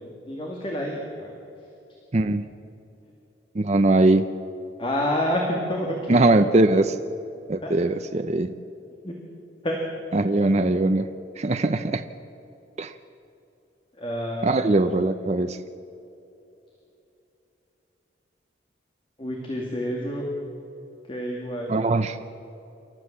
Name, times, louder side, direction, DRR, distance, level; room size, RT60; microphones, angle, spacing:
voice 1, 0.0-1.7 4.8-6.5 7.6-7.9 9.0-9.2 9.6-9.8 10.4-10.5 13.9-15.0 19.2-20.3 21.1-21.8, equal, 30° left, -1 dB, 2.3 m, -29 dB
voice 2, 2.1-2.5 3.6-4.3 6.1-7.0 7.5-8.5 10.1-11.1 11.4-12.0 12.8-12.9 14.4-15.6 21.7-22.2, right 2 dB, 35° right, 9 dB, 0.6 m, -21 dB
28.0 x 13.5 x 7.4 m, 2.9 s
head